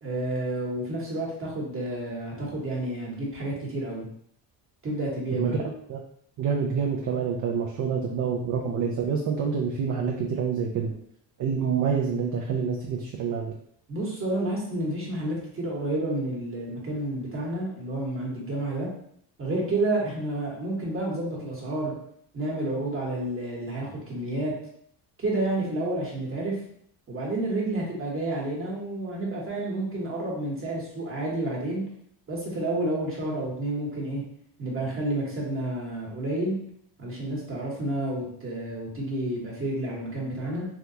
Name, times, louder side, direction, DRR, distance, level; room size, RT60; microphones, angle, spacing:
voice 1, 0.0-4.1 4.8-5.6 13.9-18.9 19.4-21.9 22.3-24.5 25.2-26.6 27.1-31.8 32.3-34.2 34.6-36.6 37.0-40.7, right 1 dB, 30° right, -3 dB, 1.3 m, -30 dB
voice 2, 5.3-6.0 6.4-11.0 11.4-13.5, right 6 dB, 45° right, -1 dB, 0.5 m, -27 dB
3.4 x 2.3 x 2.7 m, 0.66 s
cardioid pair, 100°, 44 cm